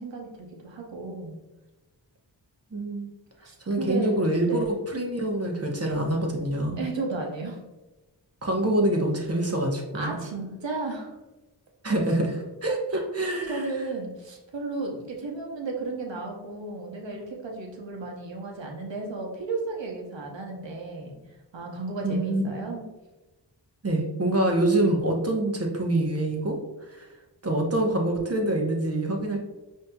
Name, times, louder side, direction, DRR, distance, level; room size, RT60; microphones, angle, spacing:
voice 1, 0.0-1.4 3.4-4.7 6.8-7.6 9.9-11.2 12.9-21.2 21.5-22.8, right 3 dB, 80° right, 0 dB, 0.8 m, -34 dB
voice 2, 2.7-3.1 3.7-6.8 8.4-10.2 11.8-13.6 22.0-22.7 23.8-26.6 26.9-27.1 27.4-29.4, right 1 dB, 35° right, 1 dB, 0.8 m, -26 dB
5.2 x 2.7 x 2.2 m, 1.1 s
wide cardioid pair, 55°, 44 cm